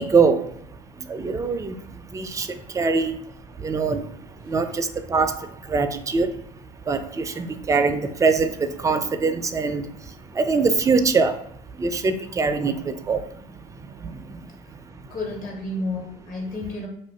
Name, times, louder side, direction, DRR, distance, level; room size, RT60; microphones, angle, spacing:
voice 1, 0.0-15.1, right 4 dB, 15° right, 9 dB, 0.3 m, -24 dB
voice 2, 4.5-4.8 14.0-14.1 14.4-14.5 15.1-16.9, left 2 dB, 45° left, -1 dB, 1.2 m, -32 dB
2.5 x 2.5 x 3.3 m, 0.70 s
hypercardioid pair, 70°, 19 cm